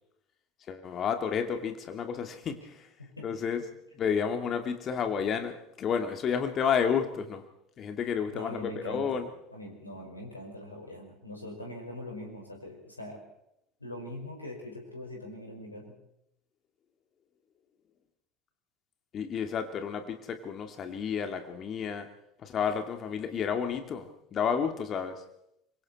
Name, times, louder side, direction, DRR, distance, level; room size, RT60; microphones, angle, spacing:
voice 1, 0.7-2.9 3.2-3.6 3.9-7.4 7.8-9.3 19.1-22.1 22.4-25.2, left 7 dB, 40° left, 6 dB, 2.6 m, -31 dB
voice 2, 8.3-9.2 9.5-13.2 13.8-16.0, left 1 dB, 85° left, 1 dB, 5.1 m, -42 dB
25.5 x 23.5 x 4.3 m, 0.82 s
figure-of-eight pair, 70°, 0 cm